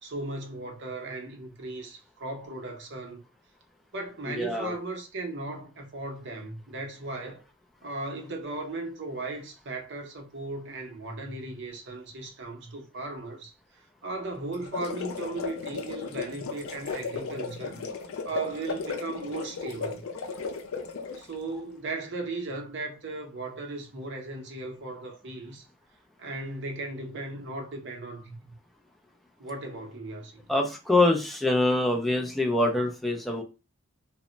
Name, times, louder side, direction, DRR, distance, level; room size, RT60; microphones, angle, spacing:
voice 1, 0.0-3.2 3.9-7.4 7.8-17.9 18.2-20.0 21.2-25.6 26.2-28.5 29.4-30.5, right 2 dB, 55° right, 0.6 m, -37 dB
voice 2, 4.4-4.8 30.5-33.4, left 2 dB, ahead, 0.3 m, -24 dB
sound 1, 14.5-21.3, left 5 dB, 75° left, 0.5 m, -35 dB
2.1 x 2.0 x 3.7 m
head